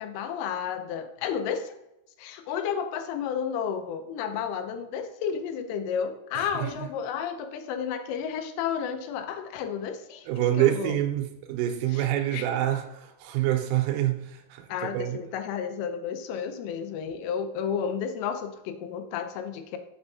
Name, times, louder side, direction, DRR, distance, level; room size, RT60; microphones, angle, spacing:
voice 1, 0.0-1.8 2.2-10.3 10.6-11.0 12.3-12.4 14.7-19.8, left 7 dB, 85° left, 8 dB, 3.1 m, -32 dB
voice 2, 6.3-6.9 10.3-15.2, right 13 dB, 85° right, 4 dB, 3.3 m, -27 dB
7.0 x 6.7 x 2.7 m, 0.85 s
omnidirectional pair, 5.7 m